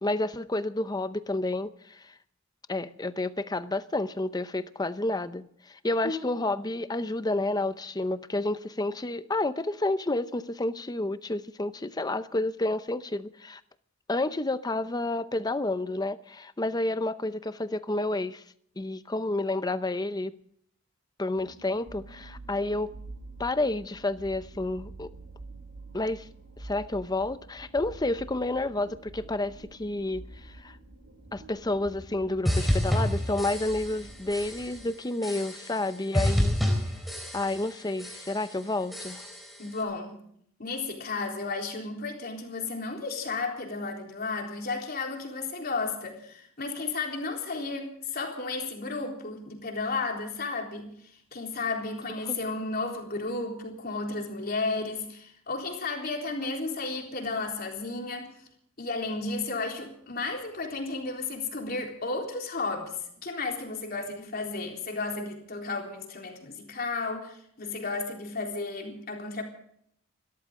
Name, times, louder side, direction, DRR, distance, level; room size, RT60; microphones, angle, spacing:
voice 1, 0.0-2.1 2.7-13.6 14.1-18.4 18.8-20.3 21.2-22.9 23.4-25.1 25.9-26.3 26.6-30.8 31.3-36.6 37.3-39.3 52.3-52.4, left 2 dB, 20° left, 13 dB, 0.7 m, -30 dB
sound 1, 21.3-34.8, right 2 dB, 85° right, 2.7 m, -47 dB
sound 2, 32.5-34.0 34.3-34.8 35.2-35.9 36.1-37.7 38.0-38.5 38.9-39.6, equal, ahead, 3.7 m, -29 dB
voice 2, 39.6-40.2 40.6-50.9 51.3-58.4 58.8-63.0 63.2-69.4, left 3 dB, 45° left, 1 dB, 3.7 m, -33 dB
28.5 x 13.5 x 3.7 m, 0.68 s
head